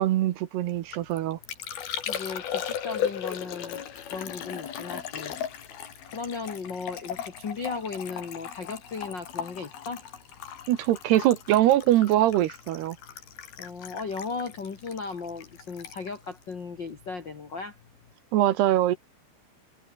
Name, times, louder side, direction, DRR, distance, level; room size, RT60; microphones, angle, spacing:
voice 1, 0.0-1.4 10.7-13.0 18.3-19.0, right 13 dB, 70° right, 2.9 m, -22 dB
Liquid, 0.7-17.3 17.6-18.1, left 9 dB, 55° left, 4.2 m, -37 dB
voice 2, 2.1-3.8 4.1-5.4 6.1-10.0 13.6-17.7, left 4 dB, 85° left, 1.0 m, -36 dB
open air
omnidirectional pair, 5.4 m